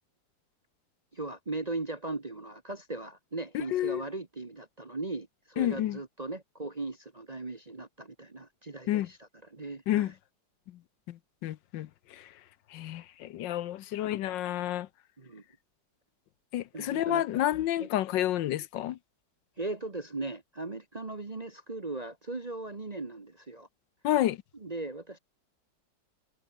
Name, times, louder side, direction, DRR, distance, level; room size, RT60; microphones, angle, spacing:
voice 1, 1.1-10.1 15.2-15.4 16.7-17.2 17.8-17.9 19.6-23.7 24.5-25.2, right 2 dB, 25° right, 1.2 m, -38 dB
voice 2, 3.5-4.0 5.6-6.0 8.9-9.1 9.9-10.1 11.1-12.3 12.7-14.9 16.5-19.0 24.0-24.4, left 13 dB, 80° left, 1.4 m, -30 dB
omnidirectional pair, 2.0 m